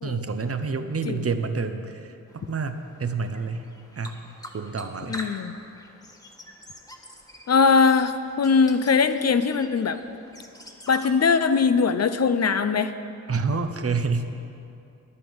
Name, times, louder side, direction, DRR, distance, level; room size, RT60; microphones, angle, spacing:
voice 1, 0.0-3.7 4.0-4.2 4.5-5.2 13.3-14.3, right 4 dB, 45° right, 8 dB, 0.9 m, -28 dB
sound 1, 2.3-11.1, left 1 dB, 10° left, 1.4 m, -45 dB
voice 2, 5.1-5.5 7.5-10.0 10.9-12.9, left 5 dB, 50° left, 10 dB, 0.6 m, -21 dB
10.5 x 9.7 x 7.0 m, 2.6 s
cardioid pair, 70°, 32 cm